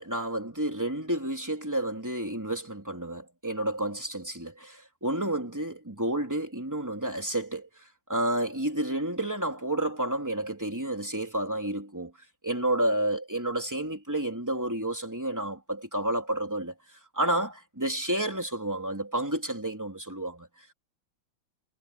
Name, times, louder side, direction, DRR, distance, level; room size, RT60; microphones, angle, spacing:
voice 1, 0.0-12.1 12.4-20.7, right 1 dB, 10° right, 3.6 m, -30 dB
omnidirectional pair, 2.3 m